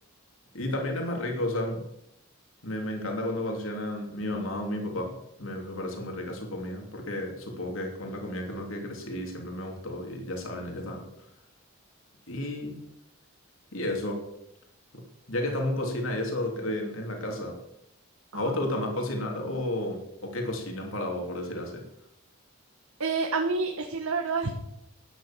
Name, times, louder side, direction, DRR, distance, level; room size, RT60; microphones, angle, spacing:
voice 1, 0.5-1.8 2.6-11.1 12.3-12.8 13.7-14.2 14.9-17.6 18.3-21.8, left 1 dB, 70° left, 1 dB, 3.1 m, -32 dB
voice 2, 23.0-24.6, right 4 dB, 85° right, 3 dB, 1.5 m, -28 dB
12.0 x 10.0 x 7.4 m, 0.80 s
head